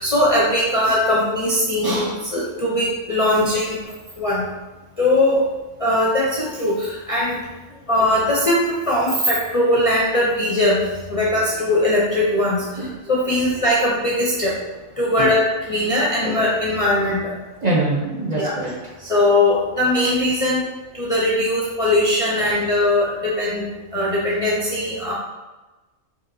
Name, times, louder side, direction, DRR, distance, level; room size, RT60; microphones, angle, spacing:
voice 1, 0.0-3.8 4.2-4.5 5.0-5.5 5.8-7.4 7.9-14.6 15.0-17.3 18.4-18.6 19.0-20.7 20.9-23.6 23.9-25.1, left 1 dB, 40° left, -6 dB, 0.5 m, -20 dB
voice 2, 17.6-18.9 22.4-22.5, right 1 dB, 40° right, -5 dB, 0.7 m, -24 dB
4.9 x 2.9 x 2.6 m, 1.1 s
omnidirectional pair, 1.3 m